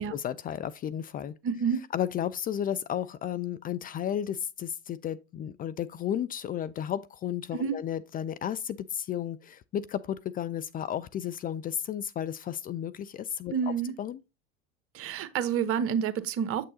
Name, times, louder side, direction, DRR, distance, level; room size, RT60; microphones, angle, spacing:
voice 1, 0.0-1.3 1.9-13.5 14.0-14.2, left 10 dB, 25° left, 0.4 m, -33 dB
voice 2, 1.4-1.8 7.5-7.8 13.5-13.9 14.9-16.6, right 7 dB, 45° right, 1.0 m, -29 dB
7.4 x 6.5 x 2.7 m
hypercardioid pair, 80°, 33 cm